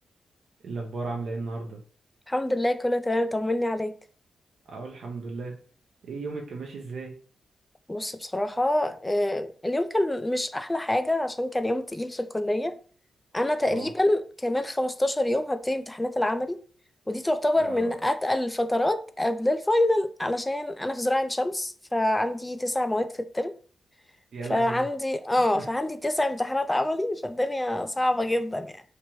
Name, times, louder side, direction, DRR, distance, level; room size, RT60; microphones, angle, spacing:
voice 1, 0.6-1.8 4.7-5.6 6.0-7.1 13.6-13.9 17.6-18.0 24.3-24.8 25.5-25.6, right 3 dB, 70° right, 0.5 m, -35 dB
voice 2, 2.3-3.9 7.9-12.7 13.3-16.6 17.1-23.5 24.5-28.8, left 1 dB, 15° left, 0.4 m, -26 dB
2.9 x 2.1 x 2.9 m
supercardioid pair, 45°, 0 cm